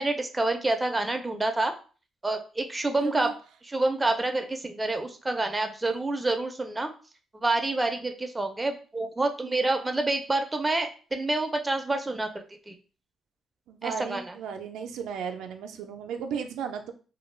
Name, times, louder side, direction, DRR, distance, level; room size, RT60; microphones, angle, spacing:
voice 1, 0.0-1.7 2.2-3.3 3.6-6.9 7.4-12.8 13.8-14.4, right 2 dB, 15° right, 5 dB, 0.4 m, -28 dB
voice 2, 3.0-3.3 13.7-16.9, right 6 dB, 85° right, 5 dB, 0.3 m, -35 dB
2.3 x 2.2 x 3.1 m, 0.37 s
cardioid pair, 90°, 0 cm